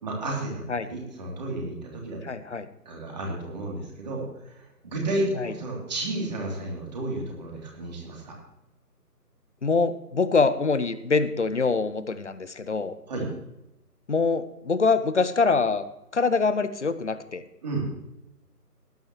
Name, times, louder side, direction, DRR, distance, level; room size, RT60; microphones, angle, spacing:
voice 1, 0.0-2.2 2.8-8.3 13.1-13.3 17.6-17.9, right 2 dB, 25° right, -2 dB, 3.3 m, -32 dB
voice 2, 2.2-2.7 5.4-5.5 9.6-12.9 14.1-15.8 16.1-17.4, left 4 dB, 45° left, 12 dB, 0.9 m, -24 dB
17.0 x 12.0 x 3.1 m, 0.88 s
figure-of-eight pair, 155°, 48 cm